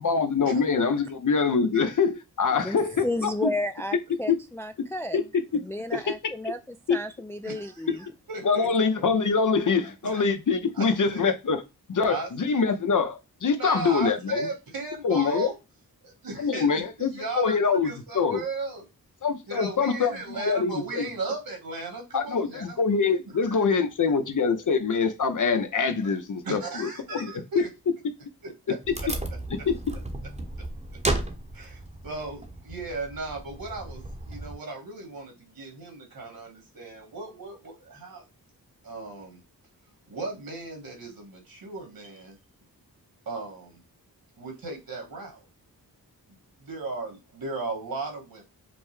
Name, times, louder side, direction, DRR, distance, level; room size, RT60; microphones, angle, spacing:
voice 1, 0.0-3.5 4.3-4.4 5.1-5.2 5.9-6.3 6.9-7.0 8.4-11.6 11.9-14.5 15.0-15.5 16.4-18.4 19.2-21.1 22.1-27.6 29.7-29.8, left 5 dB, 55° left, 0.8 m, -24 dB
voice 2, 2.6-5.2 5.6-8.0, left 1 dB, 5° left, 0.3 m, -32 dB
voice 3, 7.4-7.8 8.3-8.7 10.1-10.3 10.7-10.9 12.1-12.3 13.5-15.5 16.0-18.8 19.5-22.8 23.5-23.6 26.4-27.7 28.7-28.8 31.5-38.2 38.8-39.4 40.1-42.4 43.3-43.8 44.4-45.5 46.3-48.4, right 3 dB, 70° right, 1.9 m, -36 dB
Wood, 28.8-34.6, right 2 dB, 20° right, 1.0 m, -34 dB
5.3 x 2.2 x 3.2 m
wide cardioid pair, 75°, 36 cm